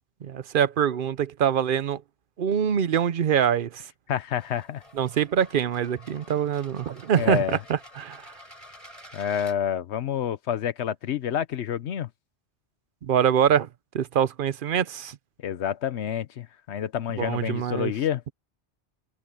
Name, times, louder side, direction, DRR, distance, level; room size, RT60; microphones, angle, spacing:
voice 1, 0.2-2.0 2.4-3.8 4.9-8.2 13.0-13.7 13.9-15.2 17.2-17.9, right 8 dB, 55° right, 0.8 m, -24 dB
voice 2, 4.1-4.8 7.2-7.6 9.1-12.1 15.4-18.2, left 9 dB, 75° left, 1.0 m, -28 dB
sound 1, 4.3-9.6, left 1 dB, 30° left, 6.2 m, -49 dB
omnidirectional pair, 1.2 m